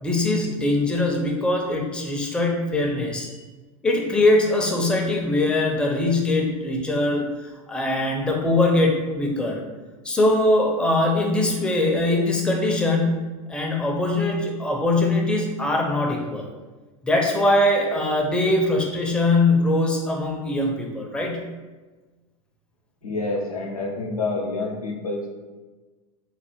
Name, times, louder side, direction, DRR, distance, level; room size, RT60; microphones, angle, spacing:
voice 1, 0.0-3.3 3.8-7.3 7.7-9.6 10.0-16.5 17.0-21.4, left 2 dB, 5° left, 0 dB, 0.4 m, -22 dB
voice 2, 23.0-25.3, left 3 dB, 85° left, -1 dB, 0.5 m, -28 dB
3.1 x 2.1 x 3.0 m, 1.3 s
figure-of-eight pair, 80°, 18 cm